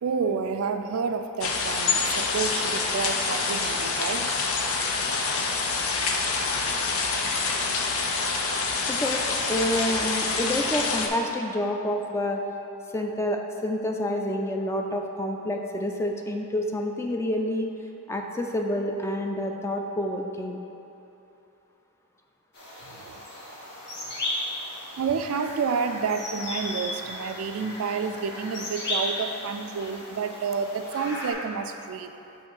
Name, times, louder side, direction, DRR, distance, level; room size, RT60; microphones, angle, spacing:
voice 1, 0.0-4.3 22.8-23.3 24.1-24.2 25.0-32.1, right 5 dB, 75° right, 8 dB, 0.3 m, -30 dB
sound 1, 1.4-11.1, left 4 dB, 80° left, 0.6 m, -26 dB
voice 2, 8.9-12.4 12.9-17.7 18.1-20.6, left 1 dB, 15° left, 2 dB, 0.3 m, -28 dB
sound 2, 22.5-31.3, left 1 dB, 55° left, 1.2 m, -35 dB
7.5 x 2.6 x 5.5 m, 2.9 s
head